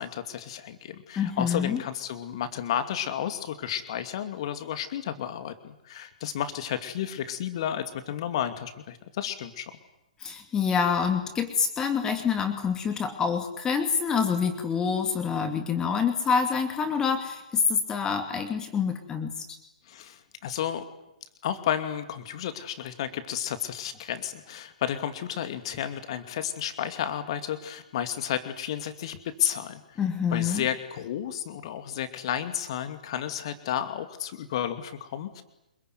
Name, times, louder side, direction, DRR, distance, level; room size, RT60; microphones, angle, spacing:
voice 1, 0.0-9.7 19.9-20.8 21.4-30.0 30.3-35.4, left 10 dB, 45° left, 10 dB, 2.5 m, -32 dB
voice 2, 1.2-1.8 10.2-19.5 30.0-30.6, left 6 dB, 15° left, 7 dB, 2.5 m, -26 dB
27.0 x 22.0 x 9.5 m, 0.89 s
figure-of-eight pair, 120°, 4 cm